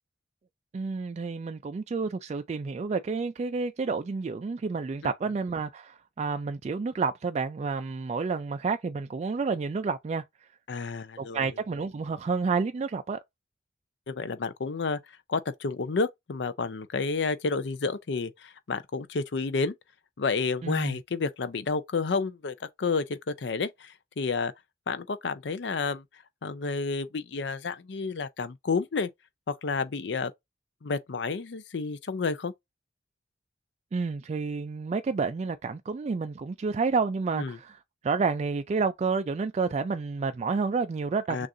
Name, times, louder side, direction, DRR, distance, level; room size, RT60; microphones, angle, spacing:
voice 1, 0.7-10.2 11.2-13.2 20.6-21.0 33.9-37.8 38.0-41.5, right 4 dB, 35° right, 0.3 m, -30 dB
voice 2, 10.7-11.5 14.1-15.0 15.3-19.7 20.2-24.5 24.9-26.0 26.4-29.1 29.5-30.3 30.8-32.5 37.3-37.6 41.3-41.5, left 4 dB, 70° left, 0.5 m, -30 dB
6.3 x 2.5 x 2.6 m
head